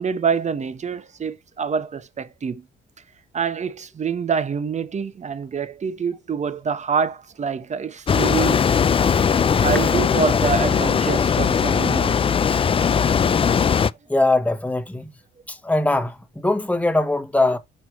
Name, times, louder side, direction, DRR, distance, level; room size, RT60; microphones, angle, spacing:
voice 1, 0.0-2.6 3.3-8.6 9.6-12.2, right 6 dB, 35° right, 0.9 m, -26 dB
sound 1, 8.1-13.9, left 7 dB, 30° left, 0.4 m, -19 dB
voice 2, 14.1-15.1 15.5-17.6, left 2 dB, 5° left, 1.3 m, -22 dB
6.5 x 4.5 x 4.5 m
cardioid pair, 90°, 20 cm